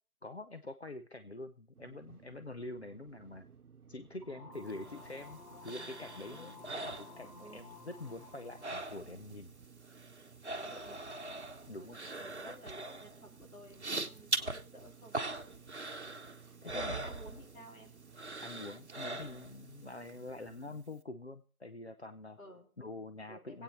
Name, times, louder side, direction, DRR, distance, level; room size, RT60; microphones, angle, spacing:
voice 1, 0.2-3.4 3.9-9.5 11.7-12.0 12.4-12.5 16.6-17.0 18.4-22.4 22.8-23.6, left 2 dB, 50° left, 9 dB, 0.7 m, -46 dB
sound 1, 1.7-20.8, right 6 dB, 80° right, 1.0 m, -58 dB
sound 2, 4.2-8.7, left 4 dB, 25° left, 1.5 m, -54 dB
sound 3, 4.7-7.7 8.0-9.4 9.6-17.8 18.1-19.7 20.1-20.2, right 2 dB, 50° right, 1.2 m, -41 dB
voice 2, 10.4-11.0 11.7-15.3 16.5-18.0 22.4-22.7 23.3-23.6, equal, 65° left, 0 dB, 4.6 m, -53 dB
19.0 x 8.9 x 4.3 m, 0.41 s
figure-of-eight pair, 170°, 43 cm